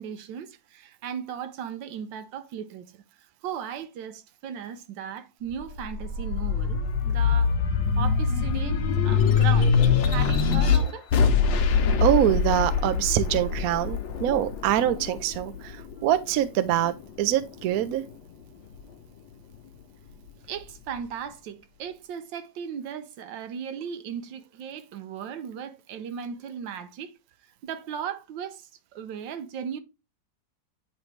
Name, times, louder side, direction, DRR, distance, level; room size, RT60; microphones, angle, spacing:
voice 1, 0.0-3.0 3.4-7.5 8.0-11.1 20.5-27.1 27.6-29.8, right 8 dB, 85° right, 1.4 m, -37 dB
sound 1, 5.5-16.3 16.8-18.0, left 5 dB, 80° left, 1.4 m, -23 dB
voice 2, 12.0-15.8 16.0-18.0, right 12 dB, 65° right, 0.9 m, -24 dB
9.6 x 3.2 x 3.2 m
omnidirectional pair, 2.0 m